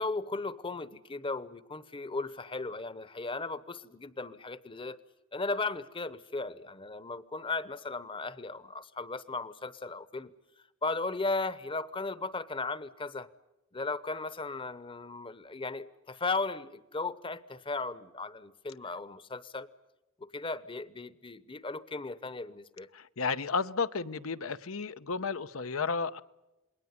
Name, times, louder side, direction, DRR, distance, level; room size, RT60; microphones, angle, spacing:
voice 1, 0.0-5.0 5.3-10.3 10.8-13.3 13.7-19.7 20.2-22.9, left 3 dB, 25° left, 0.9 m, -36 dB
voice 2, 22.9-26.2, left 4 dB, 80° left, 0.8 m, -32 dB
28.0 x 21.0 x 9.6 m
head